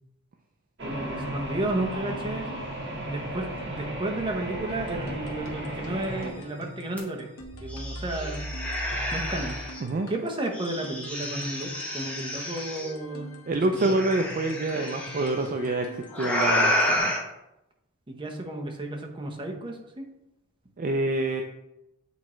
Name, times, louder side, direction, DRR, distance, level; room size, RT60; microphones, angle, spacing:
voice 1, 0.8-2.5 3.1-7.3 7.6-8.4 9.1-9.6 10.1-13.3 13.8-14.0 18.1-20.1, right 1 dB, 25° right, 1 dB, 0.9 m, -32 dB
sound 1, 0.8-6.3, right 1 dB, 55° right, 1.4 m, -34 dB
sound 2, 4.7-17.0, left 3 dB, 75° left, 1.1 m, -46 dB
sound 3, 7.0-7.1 7.4-9.8 10.5-12.9 13.8-15.3 16.1-17.2, left 1 dB, 5° left, 1.1 m, -29 dB
voice 2, 13.5-17.1 20.8-21.4, right 2 dB, 40° right, 4 dB, 0.4 m, -27 dB
8.3 x 4.4 x 3.1 m, 0.89 s
head